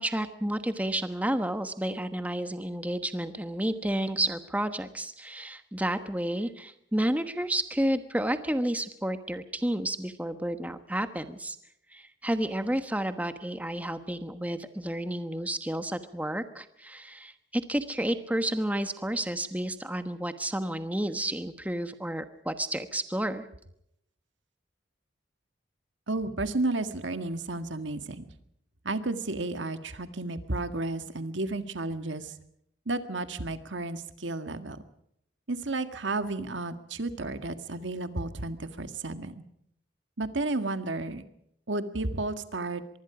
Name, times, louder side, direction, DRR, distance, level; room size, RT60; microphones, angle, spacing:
voice 1, 0.0-11.6 11.9-23.4, right 1 dB, 10° right, 9 dB, 1.2 m, -31 dB
voice 2, 26.1-28.3 28.8-32.3 32.9-34.8 35.5-39.4 40.2-41.2 41.7-42.8, right 2 dB, 80° right, 9 dB, 1.8 m, -32 dB
25.0 x 23.0 x 5.0 m, 0.75 s
head